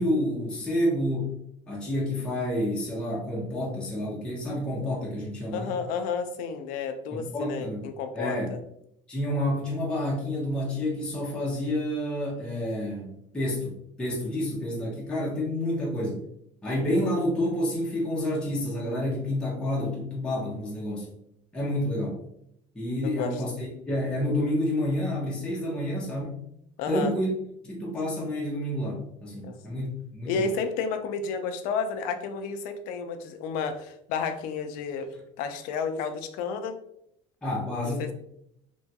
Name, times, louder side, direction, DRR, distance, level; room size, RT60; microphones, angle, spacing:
voice 1, 0.0-1.3 1.7-5.7 7.1-7.8 8.1-8.5 9.1-16.2 16.6-21.1 21.5-22.2 22.7-26.4 26.9-27.3 27.6-30.5 37.4-38.1, left 1 dB, 5° left, -6 dB, 0.6 m, -29 dB
voice 2, 5.5-8.6 23.0-23.4 26.8-27.1 29.4-29.6 30.3-35.1 35.4-36.8 38.0-38.1, left 5 dB, 60° left, 7 dB, 0.4 m, -31 dB
3.0 x 2.3 x 2.7 m, 0.75 s
cardioid pair, 170°, 16 cm